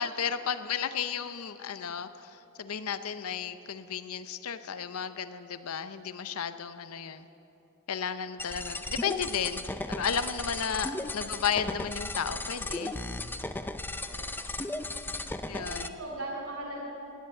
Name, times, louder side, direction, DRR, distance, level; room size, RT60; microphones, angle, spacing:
voice 1, 0.0-2.3 2.6-7.3 7.9-9.6 9.9-13.0 15.5-15.8, left 7 dB, 80° left, 12 dB, 0.6 m, -33 dB
sound 1, 8.4-15.9, left 2 dB, 10° left, 0.5 m, -36 dB
voice 2, 14.1-14.6 15.0-15.2 15.5-16.8, right 2 dB, 75° right, -3 dB, 2.9 m, -40 dB
18.0 x 10.0 x 7.7 m, 2.9 s
head